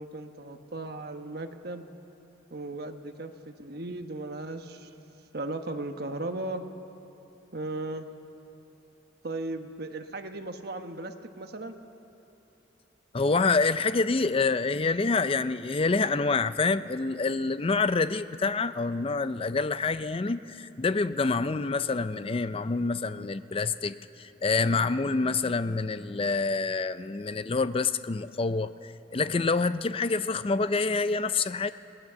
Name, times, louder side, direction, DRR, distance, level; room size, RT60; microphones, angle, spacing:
voice 1, 0.0-1.8 2.5-4.9 5.3-6.6 7.5-8.1 9.2-11.8, right 2 dB, 55° right, 6 dB, 1.2 m, -36 dB
voice 2, 13.1-31.7, left 4 dB, 30° left, 13 dB, 0.5 m, -27 dB
28.0 x 19.0 x 6.9 m, 2.9 s
head